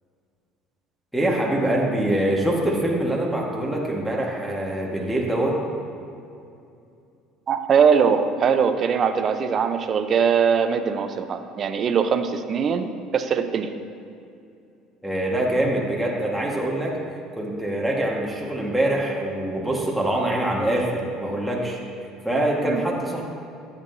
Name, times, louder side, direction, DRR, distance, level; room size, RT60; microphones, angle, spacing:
voice 1, 1.1-5.6 15.0-17.0 17.3-21.8 22.2-23.2, right 1 dB, ahead, -4 dB, 1.6 m, -24 dB
voice 2, 7.5-13.7 22.6-22.8, right 6 dB, 45° right, 8 dB, 0.7 m, -21 dB
13.5 x 8.9 x 2.7 m, 2.6 s
supercardioid pair, 85°, 0 cm